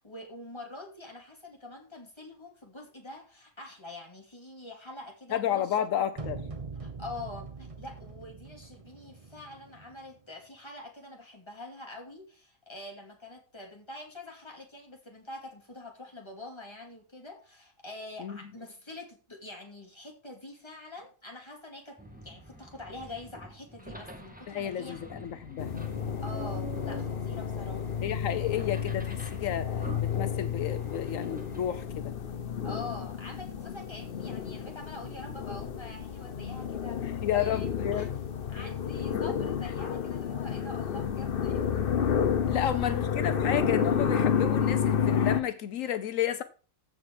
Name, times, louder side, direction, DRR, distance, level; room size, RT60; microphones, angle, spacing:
voice 1, 0.0-5.9 6.8-25.0 26.2-28.1 32.6-37.7 37.9-38.1 38.5-41.9 42.5-42.9, left 2 dB, 20° left, 2.6 m, -45 dB
voice 2, 5.3-6.4 18.2-18.4 24.5-25.7 28.0-32.2 37.2-38.1 39.1-39.2 42.5-46.4, left 10 dB, 80° left, 1.1 m, -31 dB
sound 1, 6.2-10.2, right 4 dB, 30° right, 1.1 m, -43 dB
sound 2, 22.0-31.9, right 1 dB, 5° right, 1.7 m, -46 dB
sound 3, 25.6-45.4, left 7 dB, 50° left, 0.9 m, -31 dB
15.0 x 5.9 x 4.8 m
omnidirectional pair, 1.4 m